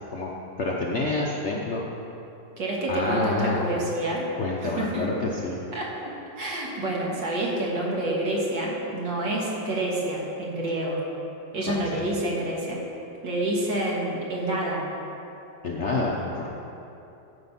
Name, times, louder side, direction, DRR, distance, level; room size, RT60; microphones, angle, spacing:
voice 1, 0.6-1.8 2.9-3.6 4.4-5.6 11.6-11.8 15.6-16.5, left 2 dB, 55° left, -2 dB, 0.8 m, -27 dB
voice 2, 2.6-4.3 4.6-5.1 5.7-11.0 11.5-12.8 13.2-14.8, right 1 dB, 75° right, -3 dB, 2.3 m, -28 dB
13.0 x 5.1 x 5.6 m, 2.9 s
omnidirectional pair, 2.0 m